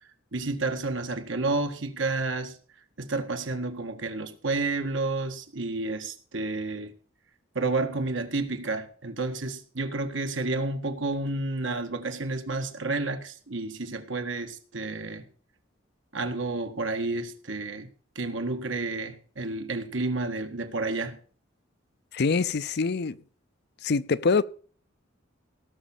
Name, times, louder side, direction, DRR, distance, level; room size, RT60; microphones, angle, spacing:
voice 1, 0.3-2.6 3.0-6.9 7.6-15.3 16.1-17.9 18.2-21.2, right 3 dB, 70° right, 1.8 m, -30 dB
voice 2, 22.1-23.2 23.8-24.4, left 4 dB, 60° left, 0.6 m, -24 dB
18.0 x 6.2 x 7.2 m
head